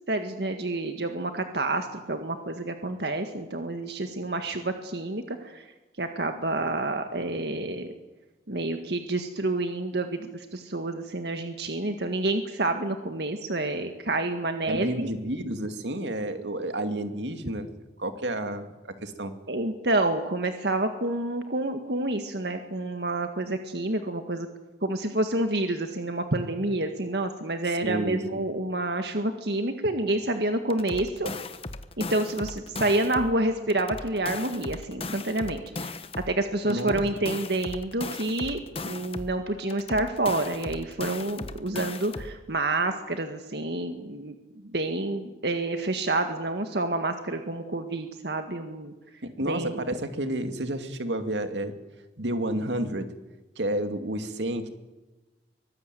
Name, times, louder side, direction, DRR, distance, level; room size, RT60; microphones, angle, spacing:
voice 1, 0.1-5.7 6.0-7.9 8.5-15.2 19.5-24.5 24.8-31.3 32.0-36.0 36.3-48.9 49.4-49.8, right 2 dB, 70° right, 6 dB, 1.8 m, -28 dB
voice 2, 14.7-17.7 18.0-19.3 27.8-28.4 36.6-37.0 49.2-51.8 52.2-53.2 53.6-54.7, right 1 dB, 90° right, 7 dB, 2.5 m, -30 dB
sound 1, 30.7-33.4 33.7-36.4 36.7-39.4 39.7-42.4, left 3 dB, 35° left, 1.2 m, -37 dB
24.0 x 20.0 x 9.3 m, 1.1 s
head